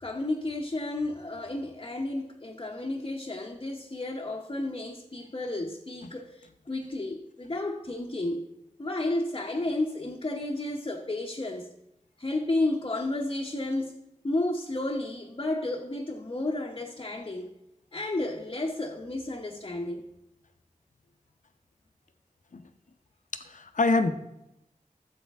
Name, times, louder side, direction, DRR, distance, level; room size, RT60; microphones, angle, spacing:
voice 1, 0.0-8.4 8.8-11.7 12.2-14.0 14.2-17.5 17.9-20.0, left 2 dB, 35° left, -1 dB, 0.8 m, -32 dB
voice 2, 23.3-24.1, left 3 dB, 65° left, 8 dB, 0.7 m, -26 dB
13.0 x 7.5 x 3.5 m, 0.87 s
wide cardioid pair, 80°, 14 cm